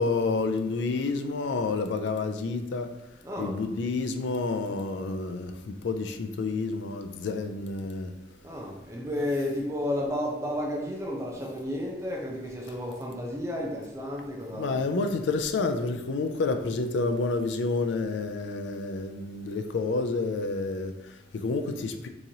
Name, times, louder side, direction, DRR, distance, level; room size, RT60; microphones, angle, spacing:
voice 1, 0.0-2.9 3.4-8.1 14.5-22.1, left 3 dB, 80° left, 0.4 m, -29 dB
voice 2, 3.2-3.6 8.4-14.8, left 1 dB, 15° right, 0.4 m, -32 dB
3.8 x 2.9 x 2.7 m
head